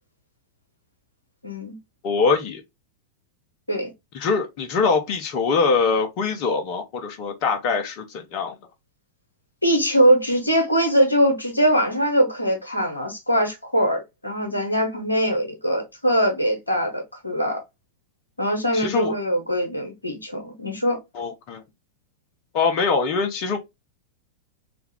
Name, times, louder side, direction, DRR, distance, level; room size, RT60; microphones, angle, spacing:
voice 1, 1.4-1.8 3.7-3.9 9.6-17.6 18.4-21.0, equal, 85° left, 0.9 m, -22 dB
voice 2, 2.0-2.6 4.1-8.6 18.7-19.1 21.1-21.6 22.5-23.6, left 4 dB, 45° left, 0.6 m, -23 dB
3.3 x 2.3 x 3.3 m
figure-of-eight pair, 90°, 0 cm